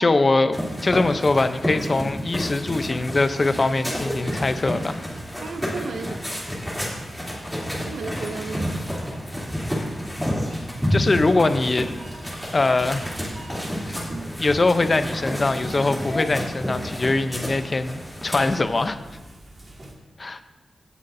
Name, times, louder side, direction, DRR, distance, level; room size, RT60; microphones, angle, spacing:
voice 1, 0.0-5.0 10.9-11.9 12.5-13.1 13.8-14.0 14.4-19.0 20.2-20.4, left 3 dB, 35° left, 9 dB, 0.6 m, -22 dB
sound 1, 0.5-18.6, equal, ahead, 3.0 m, -30 dB
voice 2, 5.4-6.2 6.8-6.9 7.7-8.9 14.1-14.3, right 4 dB, 80° right, 8 dB, 0.6 m, -34 dB
sound 2, 11.4-19.9, right 1 dB, 30° right, 2.0 m, -46 dB
17.0 x 8.2 x 2.7 m, 1.2 s
wide cardioid pair, 115°, 0 cm